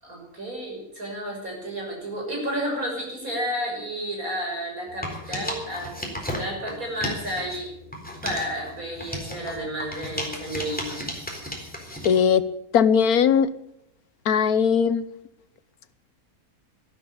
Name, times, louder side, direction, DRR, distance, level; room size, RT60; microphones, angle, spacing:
voice 1, 0.0-7.7 8.2-11.1, equal, 70° right, 0 dB, 6.7 m, -31 dB
sound 1, 4.9-7.6 7.9-12.2, equal, 5° left, 3.9 m, -34 dB
voice 2, 12.0-12.4 12.7-13.5 14.2-15.0, left 7 dB, 80° left, 14 dB, 1.4 m, -19 dB
13.0 x 12.5 x 8.6 m, 0.80 s
omnidirectional pair, 1.5 m